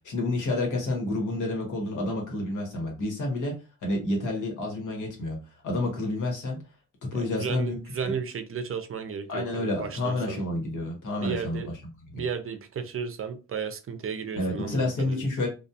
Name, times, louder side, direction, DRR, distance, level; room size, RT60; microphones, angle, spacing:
voice 1, 0.0-3.5 3.8-6.6 7.0-7.8 8.1-8.2 9.3-11.6 12.1-12.2 14.3-15.5, left 2 dB, 85° left, 1.1 m, -29 dB
voice 2, 7.1-10.4 11.2-11.7 12.1-15.3, right 6 dB, 45° right, 0.5 m, -34 dB
2.3 x 2.3 x 2.7 m
cardioid pair, 70°, 30 cm